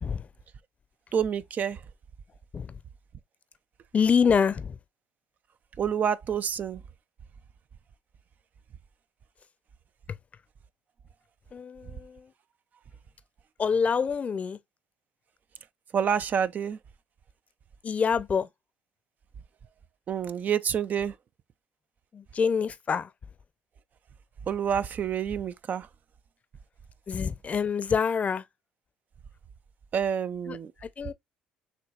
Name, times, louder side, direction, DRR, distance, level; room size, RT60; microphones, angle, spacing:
voice 1, 1.1-1.8 5.8-6.8 15.9-16.8 20.1-21.1 24.5-25.9 29.9-30.7, right 8 dB, 45° right, 0.4 m, -28 dB
voice 2, 3.9-4.8 11.5-12.3 13.6-14.6 17.8-18.5 22.1-23.1 27.1-28.4 30.5-31.1, left 6 dB, 35° left, 0.6 m, -26 dB
5.9 x 3.1 x 2.4 m
hypercardioid pair, 70°, 4 cm